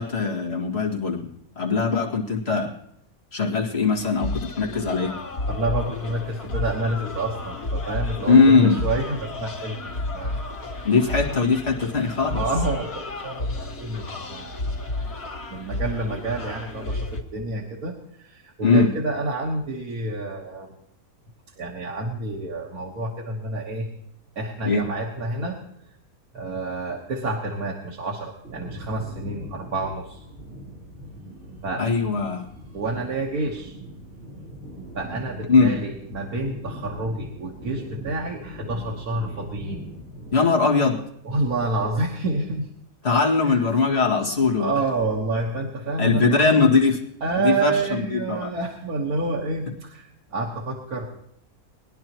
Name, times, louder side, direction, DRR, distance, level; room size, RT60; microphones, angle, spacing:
voice 1, 0.0-2.7 3.3-5.2 8.3-8.8 10.8-12.4 18.6-18.9 24.6-24.9 31.8-32.5 35.5-35.8 40.3-41.0 43.0-44.7 46.0-47.0 47.4-48.5, left 4 dB, 45° left, -2 dB, 2.3 m, -20 dB
sound 1, 3.9-17.2, left 2 dB, 75° left, 2.3 m, -32 dB
voice 2, 5.5-9.8 10.1-10.7 12.3-15.2 15.5-20.7 21.6-23.9 24.3-25.6 26.3-30.2 31.6-31.9 32.7-33.8 34.9-39.8 41.2-42.7 43.6-43.7 44.6-46.5 47.2-51.0, right 2 dB, 75° right, -1 dB, 1.9 m, -28 dB
sound 2, 28.4-40.3, right 1 dB, 50° right, 4.4 m, -41 dB
21.0 x 11.0 x 3.0 m, 0.73 s
omnidirectional pair, 1.6 m